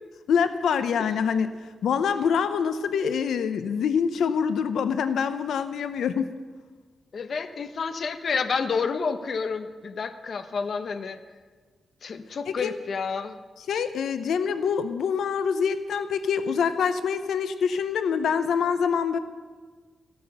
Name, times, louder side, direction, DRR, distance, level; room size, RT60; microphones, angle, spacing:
voice 1, 0.3-1.5 1.8-6.3 12.5-12.7 13.7-19.2, left 6 dB, 85° left, 11 dB, 0.7 m, -25 dB
voice 2, 7.1-11.2 12.0-13.4, left 5 dB, 45° left, 9 dB, 0.8 m, -29 dB
14.5 x 12.0 x 6.7 m, 1.4 s
wide cardioid pair, 160°, 0 cm